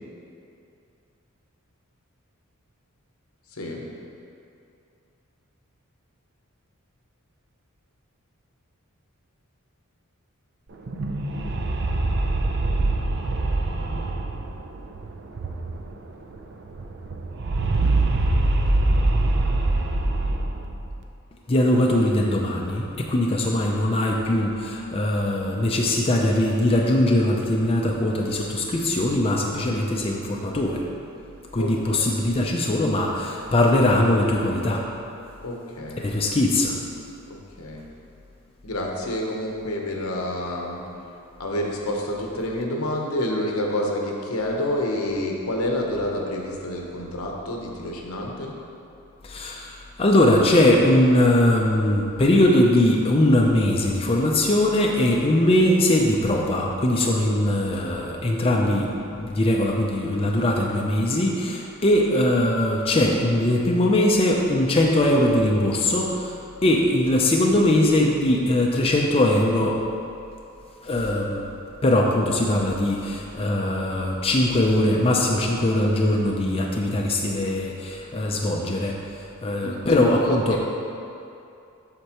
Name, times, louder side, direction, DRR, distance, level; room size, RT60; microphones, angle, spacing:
sound 1, 10.7-16.0 16.3-16.4 16.7-21.0, right 2 dB, 50° right, 0.5 m, -24 dB
voice 1, 21.5-30.8 31.5-34.8 36.0-36.7 49.2-66.4 66.6-69.8 70.8-71.4 71.8-80.6, left 1 dB, 25° left, -1 dB, 0.5 m, -21 dB
voice 2, 31.6-32.1 35.4-36.1 37.6-37.8 38.6-40.8 41.4-48.5 79.6-80.7, left 1 dB, 75° left, 0 dB, 0.9 m, -28 dB
7.9 x 6.6 x 3.0 m, 2.6 s
head